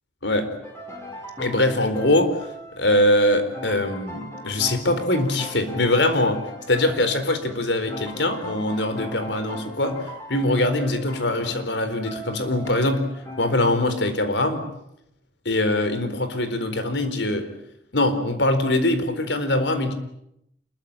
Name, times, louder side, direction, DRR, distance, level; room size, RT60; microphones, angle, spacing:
sound 1, 0.6-13.5, left 1 dB, 15° left, 6.4 m, -38 dB
voice 1, 1.4-2.4 2.8-6.4 6.7-10.0 10.3-13.1 13.4-14.7 15.4-17.5 17.9-19.9, left 1 dB, 85° left, 9 dB, 4.2 m, -22 dB
27.0 x 22.0 x 8.9 m, 0.79 s
head